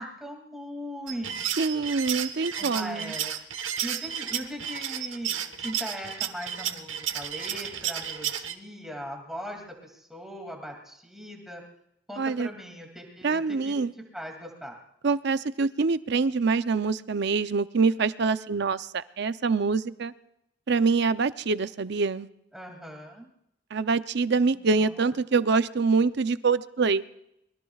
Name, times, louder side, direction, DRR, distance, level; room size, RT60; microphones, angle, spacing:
voice 1, 0.0-1.4 1.7-1.9 2.6-3.3 3.8-11.6 12.1-13.8 14.1-14.8 22.5-23.3 24.6-25.1, equal, ahead, 1 dB, 2.5 m, -39 dB
sound 1, 1.1-8.5, right 9 dB, 80° right, 1.1 m, -32 dB
voice 2, 1.6-3.1 12.2-12.5 13.2-13.9 15.0-20.1 20.7-22.3 23.7-27.0, right 4 dB, 60° right, 13 dB, 0.6 m, -25 dB
25.5 x 22.0 x 2.4 m, 0.80 s
head